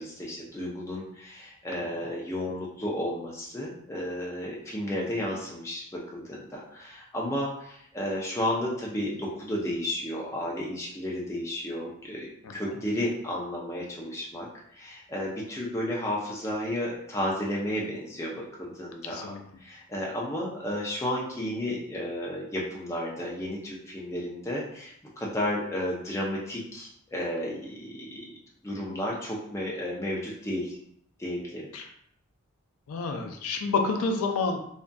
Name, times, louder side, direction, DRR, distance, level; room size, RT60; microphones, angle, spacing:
voice 1, 0.0-28.4 28.6-30.8 31.2-31.7, left 1 dB, 15° left, -4 dB, 0.4 m, -33 dB
voice 2, 19.1-19.4 31.7-31.8 32.9-34.6, left 4 dB, 85° left, 4 dB, 0.4 m, -28 dB
2.5 x 2.4 x 2.2 m, 0.70 s
head